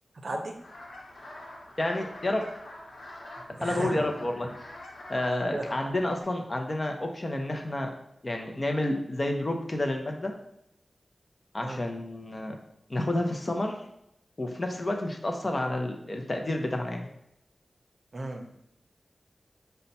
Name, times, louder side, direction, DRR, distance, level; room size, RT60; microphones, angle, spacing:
voice 1, 0.2-0.6 3.6-4.0 5.5-5.6 11.6-11.8 18.1-18.6, right 2 dB, 55° right, 4 dB, 0.6 m, -34 dB
sound 1, 0.5-6.2, left 1 dB, 90° left, 0.9 m, -45 dB
voice 2, 1.8-2.4 3.6-4.7 5.1-7.9 8.2-10.3 11.5-12.5 12.9-13.8 14.4-17.1, left 1 dB, 35° left, 3 dB, 0.6 m, -30 dB
5.4 x 2.2 x 4.1 m, 0.78 s
wide cardioid pair, 100°, 0 cm